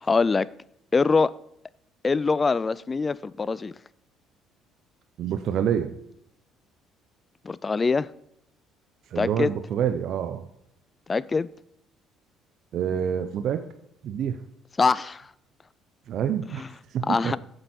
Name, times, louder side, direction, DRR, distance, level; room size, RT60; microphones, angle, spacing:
voice 1, 0.0-0.5 0.9-1.3 2.0-3.7 7.4-8.1 9.2-9.5 11.1-11.5 14.8-15.3 16.6-16.7 17.1-17.4, left 4 dB, 30° left, 0.4 m, -23 dB
voice 2, 5.2-6.0 9.1-10.5 12.7-13.6 14.0-14.4 16.1-16.6 16.9-17.3, right 9 dB, 60° right, 0.6 m, -27 dB
8.0 x 7.8 x 4.3 m
supercardioid pair, 80°, 0 cm